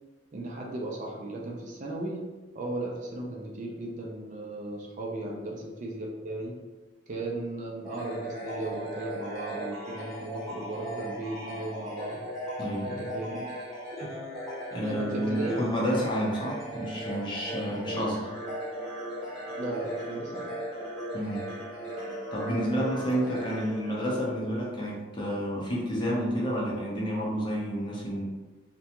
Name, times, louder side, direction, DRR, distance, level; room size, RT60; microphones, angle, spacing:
voice 1, 0.3-2.3 2.5-6.6 7.1-12.2 12.8-13.5 13.9-14.1 14.8-15.6 19.2-20.6, right 2 dB, 40° right, -1 dB, 0.4 m, -36 dB
sound 1, 7.8-24.6, equal, ahead, 1.0 m, -38 dB
voice 2, 12.6-13.1 14.7-18.3 21.1-21.5 22.3-28.2, equal, 25° left, -4 dB, 0.6 m, -30 dB
2.5 x 2.2 x 2.8 m, 1.2 s
head